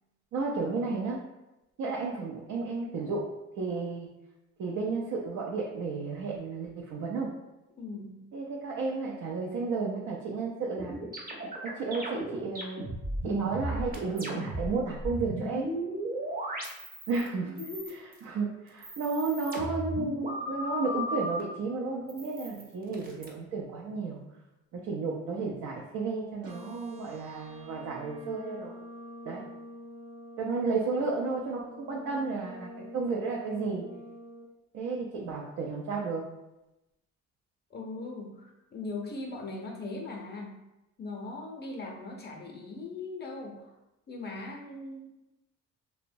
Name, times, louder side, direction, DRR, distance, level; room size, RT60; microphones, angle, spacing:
voice 1, 0.3-1.2 1.8-3.2 3.6-4.1 4.6-7.3 8.3-10.9 11.6-12.9 13.2-15.7 17.1-17.5 18.2-24.2 24.7-28.8 29.2-29.4 30.4-33.8 34.7-36.2, right 4 dB, 70° right, -3 dB, 0.5 m, -32 dB
voice 2, 7.8-8.3 17.6-18.0 37.7-40.6 41.0-43.7 44.1-45.1, left 3 dB, 35° left, 0 dB, 0.6 m, -39 dB
sound 1, 10.7-14.7 14.9-17.3 17.6-18.2 18.7-21.4 22.1-23.3, equal, 30° right, 0.7 m, -35 dB
sound 2, 26.4-34.4, equal, 90° right, 0.9 m, -46 dB
2.9 x 2.1 x 2.6 m, 0.95 s
cardioid pair, 90°, 30 cm